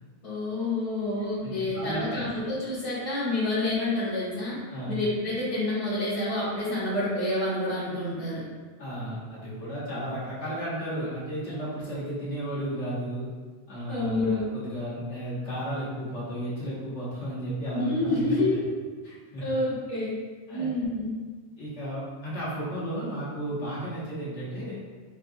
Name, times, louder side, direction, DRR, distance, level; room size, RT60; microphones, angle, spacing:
voice 1, 0.2-4.6 4.9-8.4 13.9-14.4 17.7-18.7 19.4-20.1 20.5-21.1, left 2 dB, 35° left, -11 dB, 1.1 m, -28 dB
voice 2, 1.4-2.2 4.7-4.9 8.8-13.3 13.7-18.6 19.0-19.5 20.5-20.7 21.6-24.8, right 1 dB, 65° left, -9 dB, 1.4 m, -34 dB
4.6 x 2.5 x 2.6 m, 1.4 s
omnidirectional pair, 1.3 m